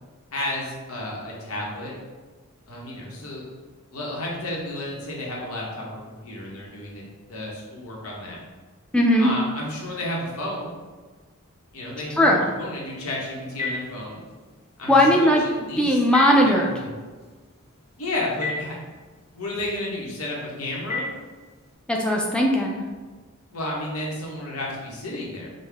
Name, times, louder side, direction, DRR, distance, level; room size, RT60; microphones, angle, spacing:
voice 1, 0.3-1.9 2.7-3.4 3.9-7.0 7.3-8.4 9.2-10.7 11.7-12.3 12.6-14.2 14.8-16.0 16.3-16.9 18.0-18.8 19.3-21.0 23.5-25.5, left 1 dB, 90° left, -3 dB, 1.0 m, -32 dB
voice 2, 8.9-9.3 12.2-12.5 14.9-15.4 15.8-16.7 21.9-22.8, equal, 5° left, -1 dB, 0.3 m, -18 dB
Telephone, 12.9-21.7, left 3 dB, 25° left, 1.0 m, -38 dB
5.3 x 2.1 x 3.4 m, 1.4 s
head